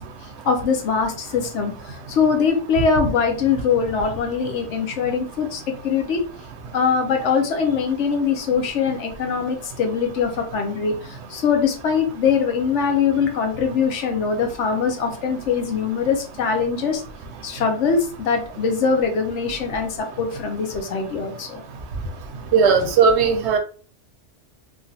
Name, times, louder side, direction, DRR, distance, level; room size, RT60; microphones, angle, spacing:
voice 1, 0.5-1.7 2.2-6.2 6.7-10.9 11.3-17.0 17.4-19.9 20.2-21.6 22.8-22.9, left 6 dB, 80° left, 4 dB, 1.0 m, -22 dB
voice 2, 22.5-23.6, right 5 dB, 70° right, 5 dB, 0.8 m, -16 dB
3.3 x 2.3 x 2.6 m, 0.40 s
omnidirectional pair, 1.2 m